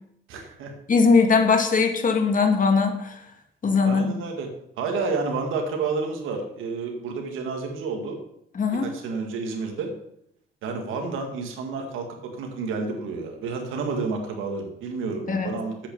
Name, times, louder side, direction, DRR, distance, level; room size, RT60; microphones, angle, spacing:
voice 1, 0.3-0.7 3.8-4.5 4.8-8.2 8.8-9.9 10.6-15.9, right 4 dB, 85° right, 3 dB, 1.9 m, -30 dB
voice 2, 0.9-3.2 3.6-4.1 8.5-8.9 15.3-15.5, left 4 dB, 40° left, 5 dB, 1.7 m, -20 dB
8.0 x 6.2 x 6.9 m, 0.75 s
cardioid pair, 90°, 20 cm